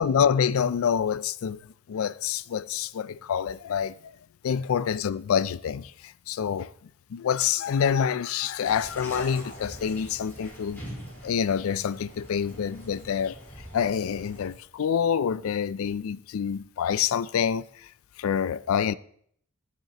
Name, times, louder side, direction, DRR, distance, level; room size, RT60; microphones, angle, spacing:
voice 1, 0.0-1.6 1.9-4.1 4.4-6.7 7.1-10.8 11.2-13.4 13.7-17.9 18.2-18.9, left 7 dB, 75° left, 0.4 m, -27 dB
sound 1, 8.6-14.5, equal, 10° left, 4.2 m, -43 dB
15.5 x 7.4 x 2.9 m
head